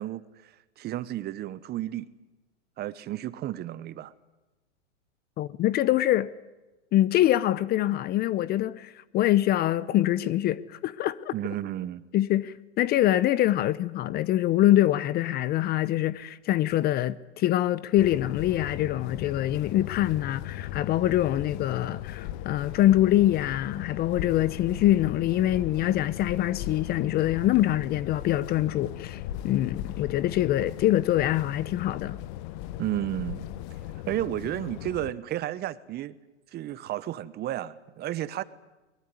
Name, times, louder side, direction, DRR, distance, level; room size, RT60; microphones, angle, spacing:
voice 1, 0.0-2.1 2.8-4.1 11.3-12.0 32.8-33.5 34.1-36.1 36.5-38.4, right 13 dB, 25° right, 1.1 m, -32 dB
voice 2, 5.4-6.3 6.9-11.3 12.1-32.2, left 13 dB, 25° left, 0.8 m, -24 dB
sound 1, 18.0-35.1, left 13 dB, 45° left, 1.4 m, -38 dB
22.5 x 22.0 x 9.5 m
hypercardioid pair, 120°, 36 cm